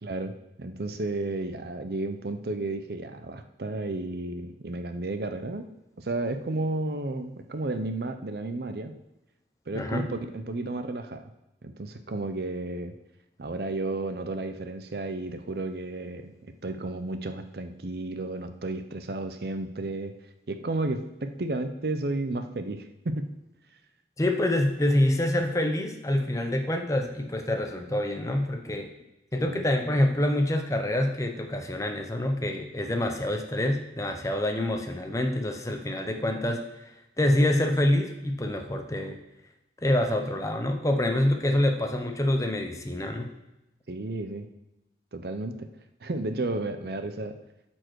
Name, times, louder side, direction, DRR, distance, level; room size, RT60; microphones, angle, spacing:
voice 1, 0.0-5.7 6.0-9.0 9.7-11.3 11.6-12.9 13.4-16.3 16.6-20.1 20.5-23.3 29.4-29.6 43.9-44.5 45.1-45.7 46.0-47.4, right 2 dB, 65° right, 8 dB, 0.6 m, -32 dB
voice 2, 9.7-10.1 24.2-28.9 29.3-36.6 37.2-39.2 39.8-43.3, left 1 dB, 20° left, 5 dB, 0.7 m, -26 dB
12.0 x 4.5 x 4.7 m, 0.93 s
head